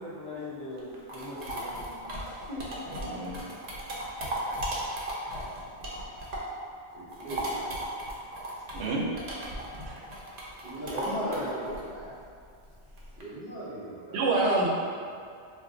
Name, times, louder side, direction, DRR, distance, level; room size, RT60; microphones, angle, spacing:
voice 1, 0.0-2.7 10.8-12.2, left 1 dB, 30° left, -12 dB, 1.0 m, -38 dB
sound 1, 0.8-6.6 6.9-13.2, right 1 dB, 50° right, 0.5 m, -36 dB
voice 2, 3.0-3.5 8.7-9.0 9.9-10.0 14.1-14.7, right 3 dB, 80° right, -2 dB, 0.8 m, -27 dB
voice 3, 6.9-7.8 10.6-11.9 13.2-14.2, right 1 dB, 55° left, -14 dB, 1.1 m, -39 dB
2.6 x 2.0 x 3.7 m, 2.3 s
omnidirectional pair, 1.1 m